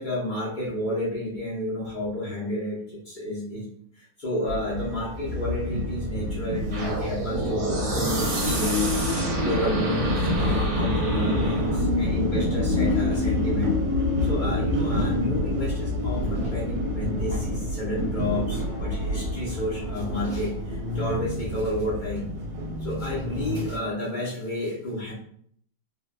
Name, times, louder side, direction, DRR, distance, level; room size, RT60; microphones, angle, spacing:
voice 1, 0.0-3.7 3.9-8.9 9.3-13.8 14.2-22.3 22.8-25.1, equal, 40° left, -7 dB, 0.7 m, -31 dB
sound 1, 4.5-23.8, left 1 dB, 80° right, 1.2 m, -27 dB
sound 2, 6.7-11.8, right 2 dB, 55° right, 1.1 m, -30 dB
sound 3, 16.5-17.0 17.8-23.6, left 1 dB, 75° left, 1.4 m, -38 dB
3.7 x 2.2 x 2.2 m, 0.62 s
omnidirectional pair, 1.9 m